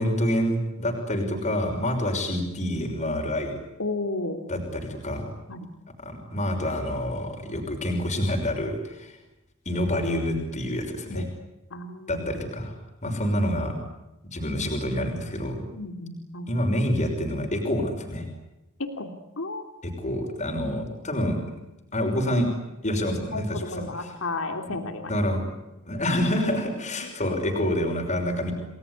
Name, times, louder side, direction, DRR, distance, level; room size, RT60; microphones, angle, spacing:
voice 1, 0.0-3.5 4.5-5.4 6.0-9.1 9.7-11.2 12.1-12.7 13.0-13.8 14.3-15.6 16.5-18.3 19.8-21.6 21.9-22.5 22.8-24.1 24.7-24.8 25.1-25.4 25.8-28.5, equal, 35° left, 2 dB, 5.9 m, -27 dB
voice 2, 3.8-4.4 5.5-5.7 11.1-11.2 11.7-12.2 15.7-16.5 19.0-19.1 19.4-19.6 23.3-25.1 27.0-27.1, left 2 dB, 65° left, 6 dB, 2.9 m, -33 dB
30.0 x 20.5 x 9.8 m, 0.97 s
head